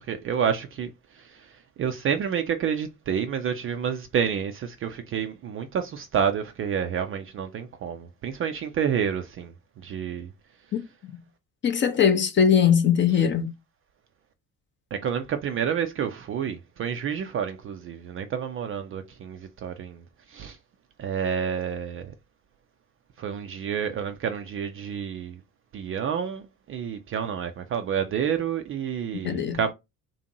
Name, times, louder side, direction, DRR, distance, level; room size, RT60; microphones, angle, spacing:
voice 1, 0.0-9.5 9.8-10.3 14.9-20.6 21.0-22.1 23.2-25.4 25.7-29.7, right 7 dB, 30° right, 0.4 m, -29 dB
voice 2, 11.6-13.5 29.2-29.6, left 8 dB, 25° left, 0.5 m, -20 dB
2.7 x 2.5 x 2.7 m
figure-of-eight pair, 55°, 46 cm